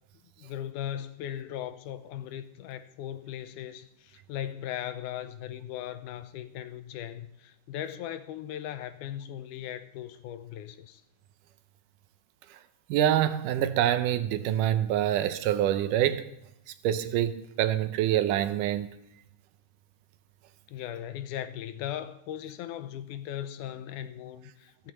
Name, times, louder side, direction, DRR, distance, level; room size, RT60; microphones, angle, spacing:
voice 1, 0.4-11.0 20.7-24.9, left 11 dB, 85° left, 2.2 m, -38 dB
voice 2, 12.9-16.3 16.8-18.9, right 11 dB, 85° right, 2.3 m, -26 dB
15.0 x 14.0 x 3.1 m
omnidirectional pair, 3.7 m